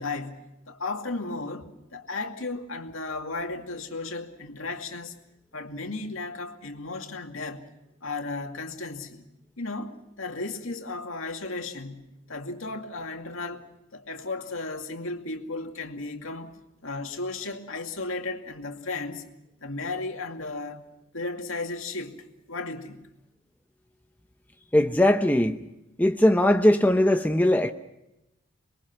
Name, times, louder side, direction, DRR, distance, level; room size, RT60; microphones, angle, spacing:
voice 1, 0.0-1.7 1.9-5.1 5.5-7.7 8.0-9.3 9.6-13.6 13.9-16.6 16.8-19.2 19.6-20.9 21.1-23.1, left 3 dB, 75° left, 2.4 m, -35 dB
voice 2, 24.7-25.6 26.0-27.7, left 1 dB, 10° left, 0.7 m, -20 dB
26.0 x 22.0 x 6.0 m
head